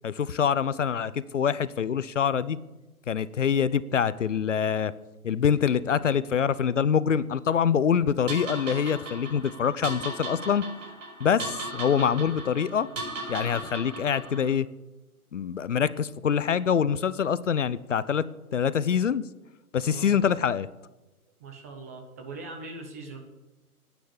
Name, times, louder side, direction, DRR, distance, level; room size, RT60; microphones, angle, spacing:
voice 1, 0.0-2.6 3.1-4.9 5.2-10.6 11.2-12.9 13.3-14.7 15.3-18.2 18.5-19.2 19.7-20.7, left 7 dB, 55° left, 17 dB, 0.8 m, -25 dB
sound 1, 8.3-14.5, right 2 dB, 55° right, 6.3 m, -37 dB
voice 2, 19.8-20.2 21.3-23.2, right 3 dB, 10° right, 4 dB, 0.6 m, -41 dB
11.0 x 9.3 x 9.9 m, 1.1 s
figure-of-eight pair, 140°, 45 cm